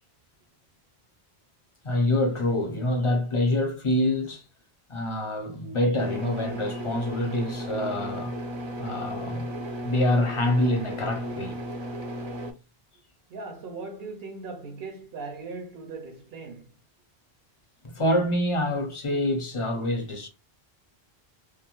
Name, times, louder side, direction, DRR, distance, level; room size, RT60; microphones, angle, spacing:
voice 1, 1.8-4.4 4.9-8.3 8.8-9.5 9.8-11.6 17.9-20.3, left 1 dB, 35° left, 0.6 m, -26 dB
sound 1, 6.0-12.5, equal, 45° right, 0.4 m, -35 dB
voice 2, 13.3-16.7, right 3 dB, 70° right, 0.8 m, -39 dB
2.4 x 2.3 x 2.9 m
omnidirectional pair, 1.1 m